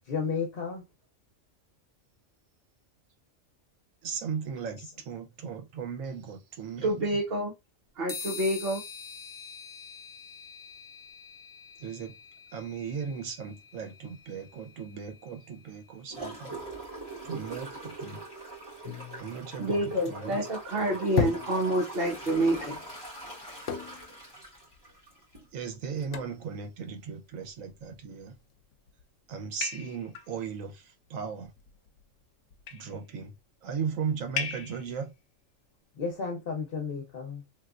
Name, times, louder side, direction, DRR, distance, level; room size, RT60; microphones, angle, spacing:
voice 1, 0.0-0.8 4.8-4.9 35.9-37.4, left 5 dB, 50° left, 0.9 m, -33 dB
voice 2, 4.0-7.3 11.8-12.2 12.5-16.5 17.2-18.2 19.2-20.9 25.5-28.4 29.3-31.5 32.7-35.1, right 6 dB, 85° right, 1.1 m, -37 dB
voice 3, 6.8-7.5 7.9-8.8 19.6-22.8, right 1 dB, 50° right, 1.2 m, -28 dB
sound 1, 8.1-15.7, left 5 dB, 35° left, 0.3 m, -45 dB
Gurgling / Toilet flush, 16.1-25.5 26.0-26.1, right 2 dB, 20° right, 2.0 m, -42 dB
sound 2, 18.8-20.3 21.2-22.1 23.7-24.2 24.7-24.8 25.3-25.5 26.1-26.5 27.6-28.1 28.7-29.0 29.6-30.3 31.4-32.0 32.5-33.0 34.4-34.9, left 7 dB, 80° left, 0.9 m, -35 dB
3.3 x 2.7 x 2.4 m
omnidirectional pair, 1.3 m